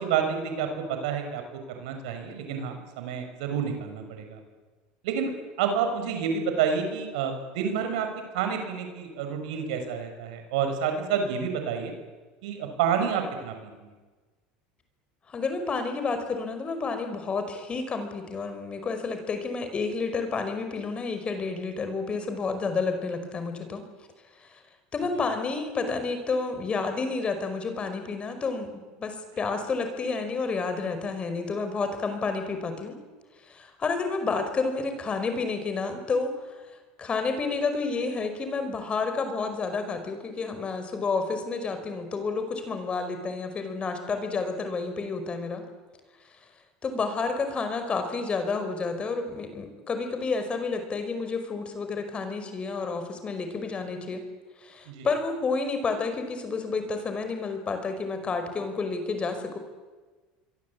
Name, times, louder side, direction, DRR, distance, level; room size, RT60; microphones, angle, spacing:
voice 1, 0.0-1.4 1.7-4.4 5.0-5.3 5.6-8.1 8.3-11.9 12.4-13.9 54.9-55.1, right 7 dB, 80° right, 6 dB, 6.0 m, -29 dB
voice 2, 15.3-23.8 24.4-24.6 24.9-33.0 33.5-36.5 37.0-45.6 46.8-54.2 54.6-59.6, left 4 dB, 30° left, 8 dB, 5.2 m, -30 dB
26.5 x 23.0 x 8.7 m, 1.3 s
supercardioid pair, 105°, 4 cm